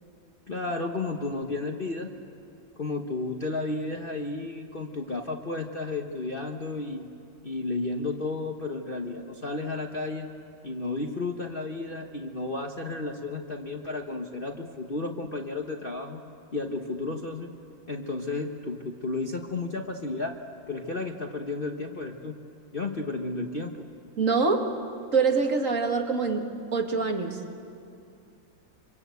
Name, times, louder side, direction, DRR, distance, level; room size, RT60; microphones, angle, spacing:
voice 1, 0.5-2.1 2.8-7.1 7.4-10.3 10.6-16.2 16.5-17.5 17.9-20.4 20.7-22.4 22.7-23.8, left 3 dB, 35° left, 2 dB, 1.1 m, -32 dB
voice 2, 24.2-24.7 25.1-27.6, right 4 dB, 45° right, 4 dB, 2.1 m, -25 dB
26.5 x 25.5 x 8.2 m, 2.5 s
omnidirectional pair, 2.1 m